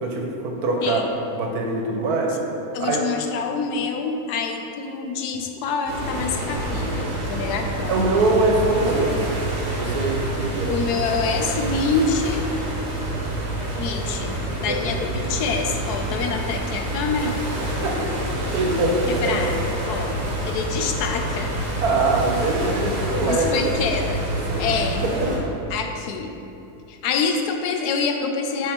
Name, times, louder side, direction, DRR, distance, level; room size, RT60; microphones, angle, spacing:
voice 1, 0.0-1.1 1.3-2.4 2.8-3.0 7.9-9.3 9.7-10.8 14.7-14.8 18.5-19.3 21.8-23.7 24.3-24.7 25.0-25.3, right 2 dB, 75° right, 0 dB, 1.3 m, -23 dB
voice 2, 2.7-7.9 10.7-12.4 13.8-17.4 19.1-21.5 23.3-24.2 24.6-25.0 25.7-26.3 26.9-28.7, left 4 dB, 85° left, 4 dB, 1.1 m, -26 dB
sound 1, 5.9-25.4, right 1 dB, 40° right, 1.2 m, -27 dB
7.7 x 4.1 x 3.5 m, 2.8 s
omnidirectional pair, 1.7 m